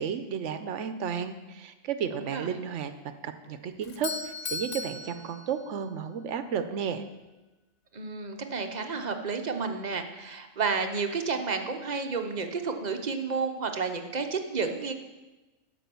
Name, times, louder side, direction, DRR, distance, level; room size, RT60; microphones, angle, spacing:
voice 1, 0.0-2.9 3.2-7.0, right 7 dB, 70° right, 10 dB, 1.0 m, -33 dB
voice 2, 2.1-2.6 7.9-14.9, right 4 dB, 40° right, 6 dB, 0.8 m, -31 dB
Doorbell, 3.8-6.0, left 4 dB, 60° left, 0.4 m, -37 dB
10.0 x 6.1 x 6.9 m, 1.1 s
omnidirectional pair, 1.3 m